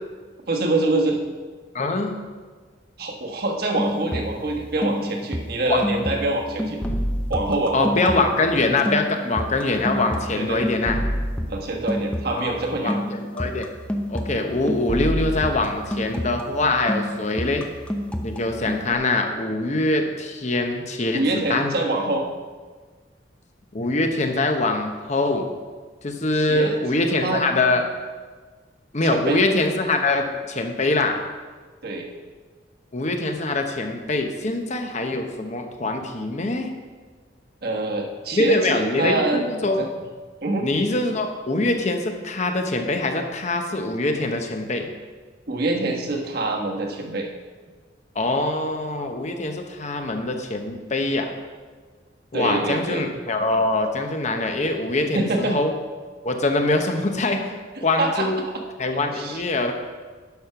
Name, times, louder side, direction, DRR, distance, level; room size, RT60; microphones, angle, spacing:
voice 1, 0.5-1.2 3.0-6.8 7.3-7.9 10.4-10.7 11.5-13.0 21.1-22.3 26.4-27.5 29.0-29.4 31.8-32.1 37.6-39.5 39.8-39.9 40.4-40.7 45.5-47.3 52.3-53.1 55.1-55.6 58.0-58.3 59.1-59.4, right 2 dB, 60° right, 1 dB, 1.4 m, -25 dB
voice 2, 1.7-2.1 5.7-5.8 7.7-11.0 12.3-12.5 12.8-13.7 14.1-17.6 18.2-21.7 23.7-25.5 26.0-27.8 28.9-31.2 32.9-36.7 38.3-39.8 40.6-44.9 48.1-51.3 52.3-55.7 56.2-58.4 58.8-59.7, left 2 dB, 40° left, 5 dB, 1.0 m, -23 dB
sound 1, 3.8-4.6 4.8-8.5 8.9-16.6 16.9-18.9, equal, 5° left, 0.6 m, -28 dB
10.5 x 6.4 x 5.8 m, 1.5 s
head